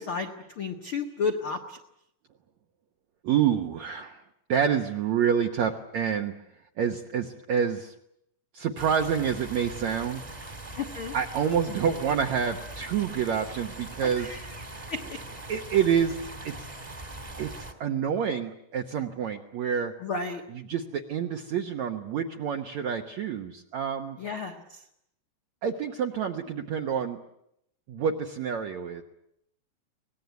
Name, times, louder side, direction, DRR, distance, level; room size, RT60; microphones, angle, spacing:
voice 1, 0.0-1.8 10.7-11.1 14.0-15.2 20.0-20.4 24.2-24.8, left 4 dB, 80° left, 4 dB, 1.1 m, -33 dB
voice 2, 3.2-4.2 4.5-6.3 6.8-7.9 8.5-10.2 11.1-14.3 14.7-14.9 15.5-16.2 16.4-16.6 17.4-19.9 20.7-24.2 25.6-27.2 27.9-29.0, right 8 dB, 80° right, 3 dB, 1.6 m, -28 dB
sound 1, 8.8-17.7, right 1 dB, 20° right, 1.2 m, -41 dB
24.5 x 19.0 x 9.4 m, 0.77 s
omnidirectional pair, 5.0 m